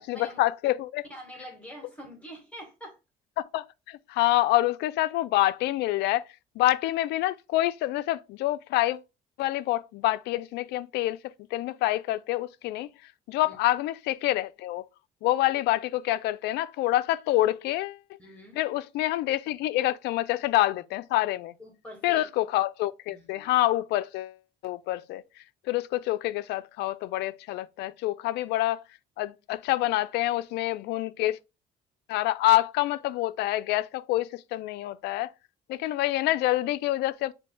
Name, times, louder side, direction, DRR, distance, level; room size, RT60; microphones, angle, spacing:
voice 1, 0.0-1.0 3.4-6.2 6.6-9.0 9.4-11.2 11.5-12.9 13.3-14.8 15.2-18.0 18.6-21.5 22.0-24.3 24.6-25.2 25.7-28.8 29.2-31.4 32.1-35.3 35.7-37.3, left 16 dB, 80° left, 0.4 m, -27 dB
voice 2, 1.1-3.0 13.4-13.6 18.2-18.6 21.6-22.2 23.1-23.5, equal, 5° left, 1.6 m, -45 dB
8.2 x 2.8 x 2.2 m
cardioid pair, 110°, 17 cm